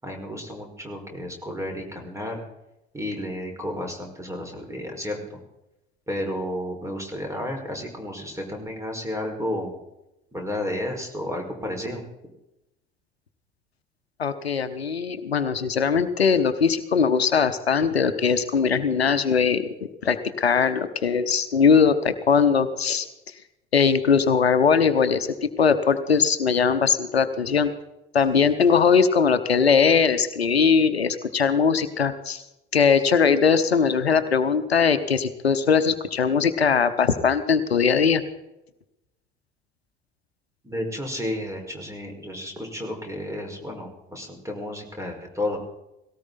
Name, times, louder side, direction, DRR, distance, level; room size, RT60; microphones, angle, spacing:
voice 1, 0.0-2.4 2.9-5.4 6.1-9.7 10.3-12.0 40.6-45.6, left 1 dB, 10° right, 2 dB, 5.4 m, -32 dB
voice 2, 14.2-19.7 20.0-23.1 23.7-25.3 25.6-27.7 28.1-32.4 32.7-38.2, left 6 dB, 85° left, 12 dB, 0.9 m, -20 dB
18.0 x 18.0 x 4.2 m, 0.92 s
figure-of-eight pair, 60°, 31 cm